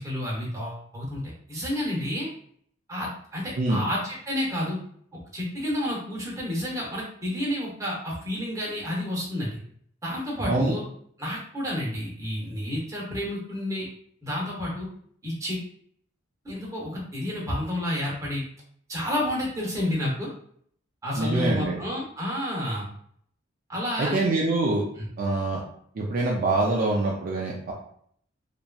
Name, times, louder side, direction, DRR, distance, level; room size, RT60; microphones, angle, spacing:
voice 1, 0.0-2.3 2.9-4.8 5.1-9.6 10.0-10.8 11.2-13.9 14.2-14.9 15.2-15.6 16.4-18.4 18.9-20.3 21.0-22.9 23.7-24.2 25.0-25.1, left 1 dB, 15° right, -4 dB, 0.9 m, -30 dB
voice 2, 21.2-21.8 24.0-24.8 25.2-25.6 26.0-27.7, right 2 dB, 45° right, -2 dB, 0.4 m, -24 dB
2.9 x 2.5 x 2.2 m, 0.63 s
head